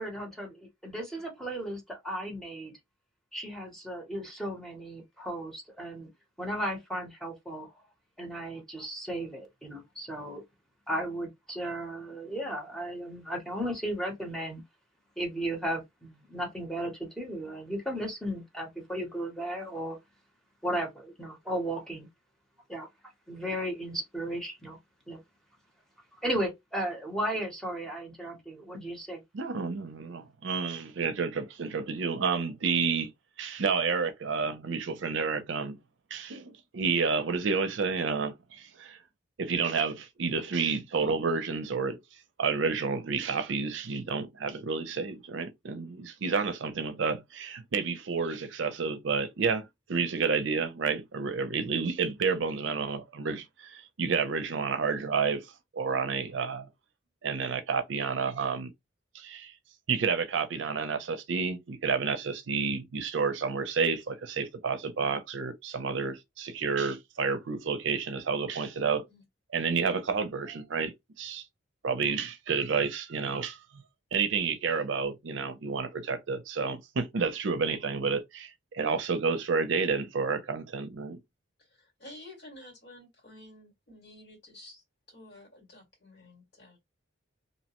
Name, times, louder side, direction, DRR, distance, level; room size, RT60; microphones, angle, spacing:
voice 1, 0.0-2.7 3.3-6.1 6.4-7.7 8.2-10.4 10.9-14.6 15.2-20.0 20.6-22.1 22.7-22.9 23.3-24.8 25.1-25.2 26.2-29.2, right 1 dB, ahead, 0.8 m, -35 dB
voice 2, 29.3-33.1 33.4-35.8 36.1-39.0 39.4-42.0 42.4-55.5 55.7-56.7 57.2-58.7 59.1-59.5 59.9-69.0 69.5-71.4 71.8-73.8 74.1-81.2, right 5 dB, 65° right, 0.5 m, -30 dB
voice 3, 81.7-86.9, left 1 dB, 60° left, 1.8 m, -51 dB
2.7 x 2.1 x 2.9 m
head